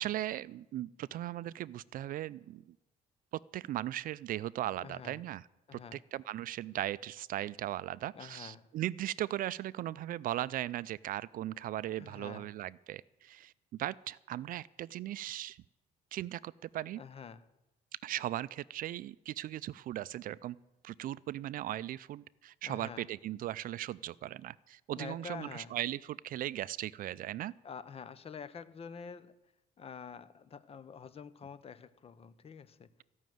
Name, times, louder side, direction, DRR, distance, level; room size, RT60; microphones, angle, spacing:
voice 1, 0.0-2.6 3.3-5.4 5.7-13.5 13.8-15.6 16.1-17.0 18.0-20.6 20.8-27.5, right 13 dB, 55° right, 19 dB, 0.4 m, -38 dB
voice 2, 4.8-5.2 5.7-6.0 8.1-8.7 12.0-12.5 17.0-17.5 22.6-23.1 24.9-25.8 27.6-29.3 29.8-32.9, left 6 dB, 35° left, 16 dB, 0.8 m, -47 dB
14.5 x 6.3 x 9.2 m, 0.96 s
cardioid pair, 110°, 17 cm